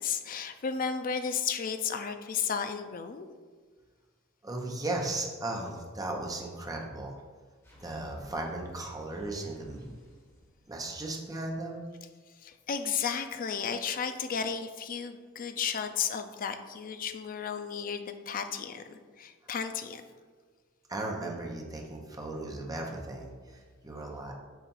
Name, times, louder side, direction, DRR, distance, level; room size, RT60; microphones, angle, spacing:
voice 1, 0.0-3.3 12.4-20.0, left 6 dB, 40° left, 8 dB, 0.4 m, -33 dB
voice 2, 4.4-7.2 7.8-9.9 10.7-11.8 19.4-19.5 20.9-24.3, right 2 dB, 20° right, 0 dB, 0.8 m, -36 dB
sound 1, 7.6-11.3, left 1 dB, 15° left, 1.5 m, -56 dB
6.9 x 2.5 x 5.5 m, 1.5 s
head